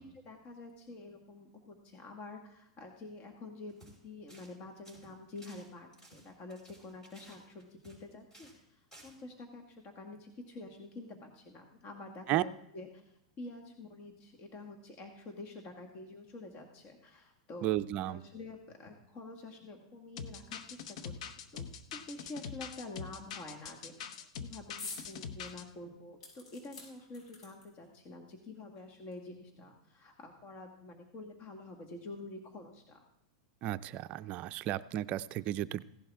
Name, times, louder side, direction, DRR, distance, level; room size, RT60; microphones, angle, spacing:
voice 1, 0.0-3.8 4.0-21.1 21.5-21.6 21.9-24.1 24.4-24.7 25.1-33.0, left 2 dB, 35° left, 2 dB, 1.8 m, -48 dB
sound 1, 3.7-4.0 4.3-4.6 4.8-8.0 8.3-8.6 8.9-9.1, right 1 dB, 15° left, 5.3 m, -57 dB
voice 2, 17.6-18.2 33.6-35.8, right 14 dB, 40° right, 13 dB, 0.4 m, -33 dB
sound 2, 20.2-25.6, left 6 dB, 65° left, 1.0 m, -43 dB
sound 3, 24.8-25.1 25.5-25.6 26.2-27.9 28.8-28.9 29.1-29.2, left 3 dB, 80° left, 6.0 m, -46 dB
16.5 x 11.5 x 3.6 m, 0.86 s
hypercardioid pair, 125°, 4 cm